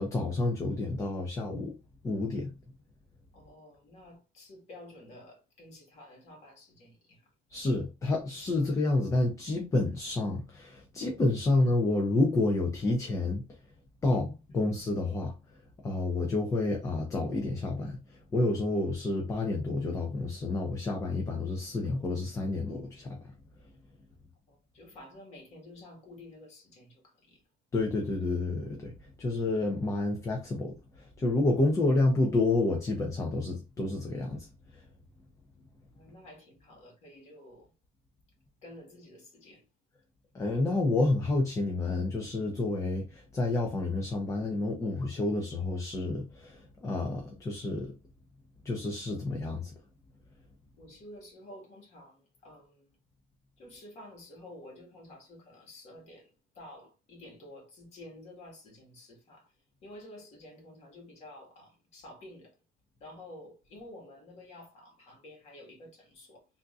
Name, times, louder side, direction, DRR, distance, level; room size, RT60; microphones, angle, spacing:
voice 1, 0.0-1.7 2.0-2.5 7.5-13.4 14.0-23.3 27.7-34.5 34.7-34.8 40.3-47.9 48.6-49.7, left 2 dB, 20° left, 0.6 m, -29 dB
voice 2, 3.3-7.3 14.5-14.7 24.5-27.4 35.9-37.7 38.6-39.7 50.8-53.0 53.6-59.5 59.8-62.6 63.0-66.5, left 1 dB, 45° left, 1.7 m, -51 dB
3.5 x 2.7 x 2.4 m
cardioid pair, 140°, 15 cm